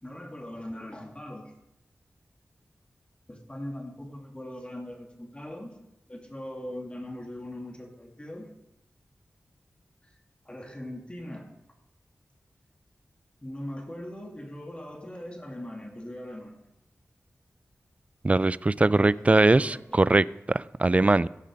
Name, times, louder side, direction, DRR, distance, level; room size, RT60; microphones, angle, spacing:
voice 1, 0.0-1.5 3.3-5.7 6.1-8.5 10.0-10.1 10.4-11.5 13.4-16.6 19.0-19.8, left 1 dB, 20° left, 1 dB, 2.6 m, -40 dB
voice 2, 18.2-21.3, right 2 dB, 25° right, 19 dB, 0.4 m, -21 dB
16.0 x 6.5 x 5.3 m, 0.87 s
cardioid pair, 45°, 5 cm